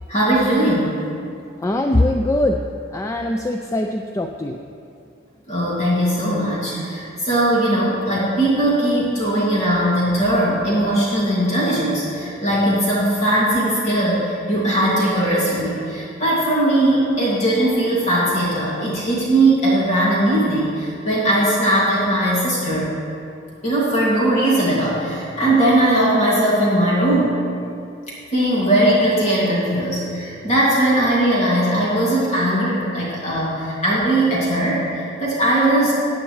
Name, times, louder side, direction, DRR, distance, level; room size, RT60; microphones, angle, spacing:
voice 1, 0.1-1.0 5.5-22.9 23.6-27.4 28.3-35.9, right 1 dB, 40° left, -7 dB, 2.1 m, -19 dB
voice 2, 1.6-2.6 2.9-4.6, left 1 dB, 15° left, 3 dB, 0.3 m, -21 dB
14.0 x 8.8 x 3.1 m, 2.5 s
head